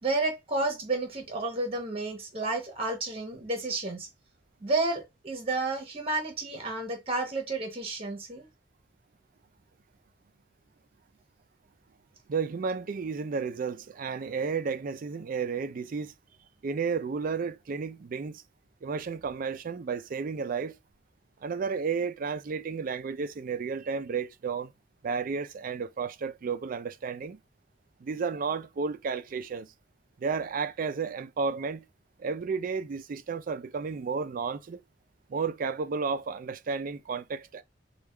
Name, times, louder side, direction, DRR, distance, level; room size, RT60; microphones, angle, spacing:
voice 1, 0.0-4.1 4.6-8.5, right 2 dB, 30° right, 0.9 m, -31 dB
voice 2, 12.3-16.1 16.6-18.4 18.8-20.8 21.4-24.7 25.0-27.4 28.0-29.7 30.2-31.8 32.2-34.8 35.3-37.6, right 5 dB, 45° right, 0.4 m, -32 dB
3.5 x 2.3 x 3.3 m
head